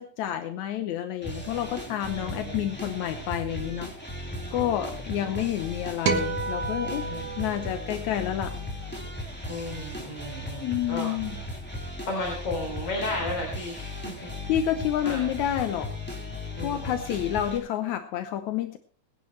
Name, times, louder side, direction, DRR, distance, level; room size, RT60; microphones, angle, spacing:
voice 1, 0.0-7.1 7.4-8.6 10.6-11.4 14.2-15.9 16.6-18.8, left 11 dB, 80° left, 8 dB, 2.3 m, -29 dB
sound 1, 1.2-17.6, left 1 dB, 5° left, 3.5 m, -37 dB
voice 2, 2.2-2.8 4.5-5.5 7.1-7.6 9.5-11.1 12.1-14.5 15.0-15.3 16.6-17.0, left 2 dB, 50° left, 0 dB, 4.5 m, -35 dB
sound 2, 6.1-8.5, right 5 dB, 80° right, 3.0 m, -31 dB
22.0 x 10.5 x 3.2 m, 0.38 s
omnidirectional pair, 3.3 m